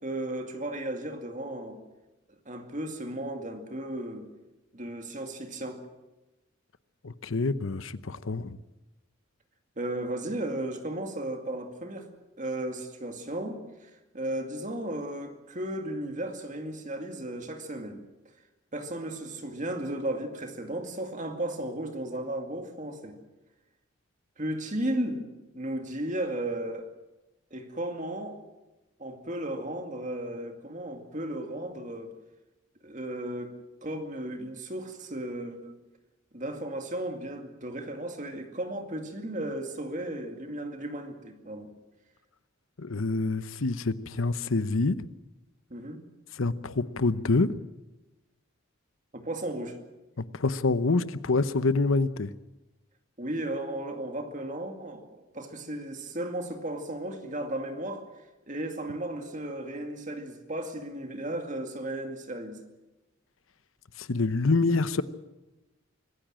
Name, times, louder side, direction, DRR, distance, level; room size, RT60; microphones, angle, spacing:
voice 1, 0.0-1.8 2.5-4.3 4.7-5.9 9.8-12.1 12.4-18.0 18.7-23.2 24.4-25.3 25.5-26.9 27.5-28.4 29.0-32.1 32.8-33.6 33.8-35.8 36.3-41.7 45.7-46.0 49.1-49.8 53.2-58.1 58.5-62.6, right 1 dB, 35° right, 5 dB, 2.2 m, -35 dB
voice 2, 7.0-8.6 42.8-45.0 46.4-47.5 50.2-52.3 64.0-65.0, left 3 dB, 80° left, 14 dB, 0.9 m, -26 dB
25.0 x 15.5 x 7.6 m, 1.1 s
head